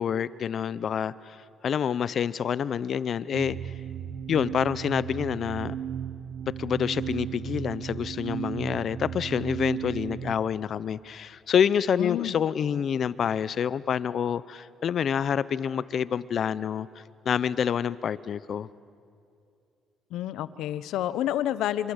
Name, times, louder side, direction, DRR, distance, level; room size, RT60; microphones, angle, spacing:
voice 1, 0.0-1.4 1.6-3.6 4.3-5.8 6.6-16.9 17.2-18.7, left 8 dB, 55° left, 18 dB, 0.7 m, -27 dB
sound 1, 3.3-10.3, right 9 dB, 65° right, 1.0 m, -35 dB
voice 2, 12.0-12.4 20.1-21.9, left 12 dB, 80° left, 15 dB, 1.0 m, -29 dB
27.5 x 25.5 x 8.2 m, 2.6 s
cardioid pair, 90°, 0 cm